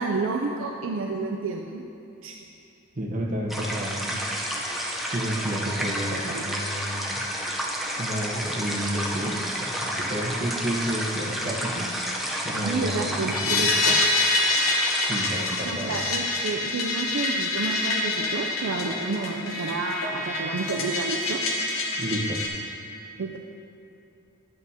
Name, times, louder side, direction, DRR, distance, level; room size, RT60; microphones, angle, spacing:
voice 1, 0.0-1.8 2.2-2.4 5.8-5.9 6.2-6.5 12.6-14.1 15.6-21.4 23.2-23.4, right 3 dB, 65° right, 1 dB, 0.4 m, -30 dB
voice 2, 3.0-4.2 5.1-7.2 8.0-11.9 12.4-13.1 13.5-13.7 14.9-16.0 22.0-22.4, right 1 dB, 40° right, -2 dB, 0.9 m, -31 dB
sound 1, 3.5-15.7, equal, ahead, 0.6 m, -31 dB
sound 2, 13.3-22.5, left 2 dB, 70° left, 1.0 m, -26 dB
9.8 x 8.1 x 2.8 m, 2.7 s
head